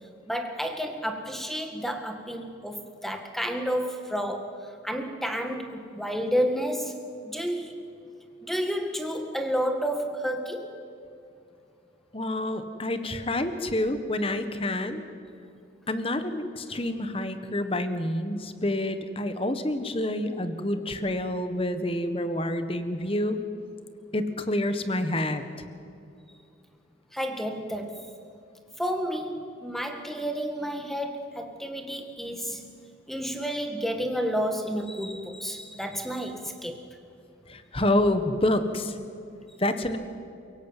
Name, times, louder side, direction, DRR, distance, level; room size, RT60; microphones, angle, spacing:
voice 1, 0.3-6.9 7.2-7.8 8.4-10.7 27.1-28.1 28.8-32.7 33.1-36.9, equal, ahead, 5 dB, 1.9 m, -31 dB
voice 2, 12.1-15.0 15.9-23.4 24.1-25.4 32.5-32.6 37.5-39.0 39.6-40.0, left 1 dB, 30° left, 10 dB, 1.5 m, -28 dB
29.0 x 17.0 x 9.1 m, 2.5 s
head